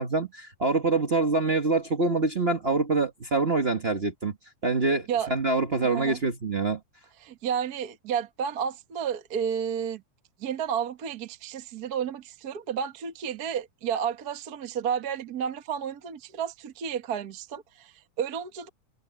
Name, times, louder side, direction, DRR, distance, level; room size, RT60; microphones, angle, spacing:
voice 1, 0.0-4.3 4.6-6.8, right 3 dB, 65° right, 0.6 m, -25 dB
voice 2, 7.2-10.0 10.4-18.7, right 8 dB, 45° right, 1.4 m, -31 dB
omnidirectional pair, 3.4 m